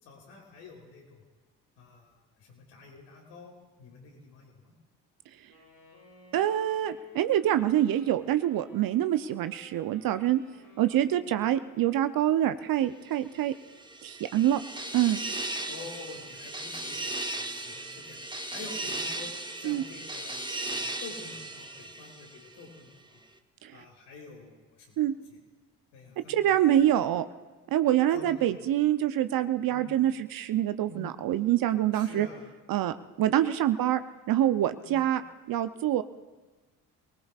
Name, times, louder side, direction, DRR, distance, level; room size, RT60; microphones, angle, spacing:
voice 1, 0.0-1.2 1.8-4.7 15.7-18.2 18.5-20.3 20.7-23.2 23.7-25.4 25.9-27.0 28.1-28.6 29.7-29.8 30.9-31.0 31.9-32.4 34.8-35.0, left 3 dB, 75° left, -1 dB, 3.6 m, -48 dB
Wind instrument woodwind instrument, 5.5-12.4, left 3 dB, 90° left, 6.9 m, -55 dB
voice 2, 6.3-10.4 10.8-13.5 14.0-14.6 14.9-15.2 19.6-19.8 23.6-23.8 25.0-25.1 26.3-27.2 27.7-32.3 32.7-35.2 35.5-36.0, right 12 dB, 50° right, 11 dB, 0.7 m, -26 dB
sound 1, 13.5-22.6, right 2 dB, 10° right, 1.2 m, -37 dB
28.0 x 19.0 x 2.4 m, 1.2 s
hypercardioid pair, 50°, 45 cm